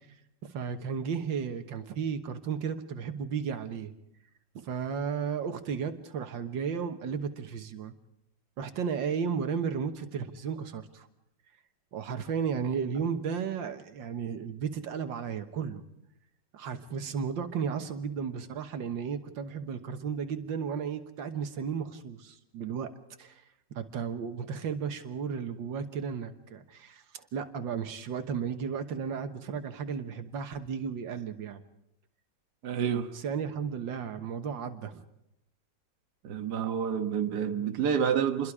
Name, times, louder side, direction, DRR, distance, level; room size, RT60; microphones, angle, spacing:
voice 1, 0.5-3.9 4.6-7.9 8.6-11.1 11.9-15.8 16.5-22.9 23.2-23.4 23.8-31.6 33.1-35.0, right 6 dB, 85° right, 2.0 m, -34 dB
voice 2, 32.6-33.1 36.2-38.5, right 8 dB, 65° right, 1.8 m, -28 dB
27.5 x 22.0 x 4.9 m
omnidirectional pair, 2.0 m